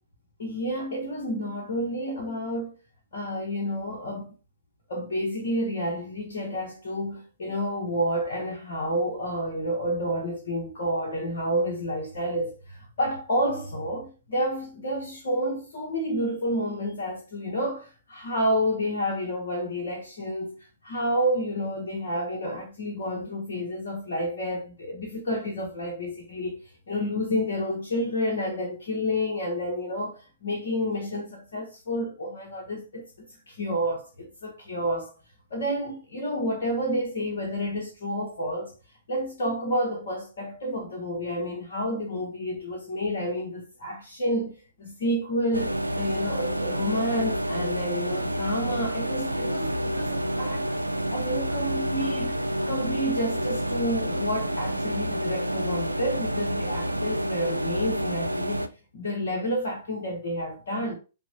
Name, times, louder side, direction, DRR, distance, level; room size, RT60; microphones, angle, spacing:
voice 1, 0.4-2.8 3.1-4.3 4.9-26.6 26.9-35.1 35.5-38.7 39.1-50.8 51.1-52.4 52.7-61.0, equal, 60° left, 0.9 m, -30 dB
sound 1, 45.5-58.7, right 1 dB, 85° right, 0.3 m, -29 dB
5.8 x 2.1 x 2.7 m
figure-of-eight pair, 115°, 0 cm